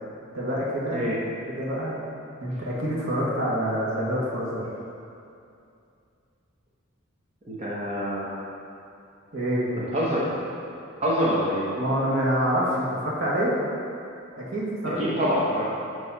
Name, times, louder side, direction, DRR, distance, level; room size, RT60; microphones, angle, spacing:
voice 1, 0.3-1.1 1.5-2.0 2.4-4.6 9.3-9.7 11.7-13.5 14.4-15.0, equal, 75° right, -6 dB, 1.6 m, -26 dB
voice 2, 7.5-8.3 9.8-10.5 11.0-11.7 15.0-15.7, equal, 35° right, -7 dB, 1.0 m, -26 dB
8.3 x 3.2 x 5.5 m, 2.6 s
head